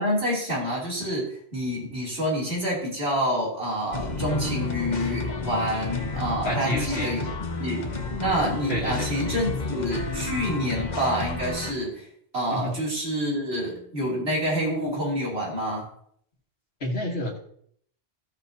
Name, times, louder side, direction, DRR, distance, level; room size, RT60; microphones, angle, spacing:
voice 1, 0.0-7.3 7.6-12.1 12.3-15.8, equal, 75° right, -4 dB, 3.2 m, -28 dB
sound 1, 3.9-11.7, left 3 dB, 45° left, 1.0 m, -31 dB
voice 2, 6.4-7.2 8.7-9.1 12.5-12.7 16.8-17.4, equal, 85° left, -5 dB, 1.8 m, -29 dB
15.5 x 6.1 x 2.7 m, 0.65 s
omnidirectional pair, 1.0 m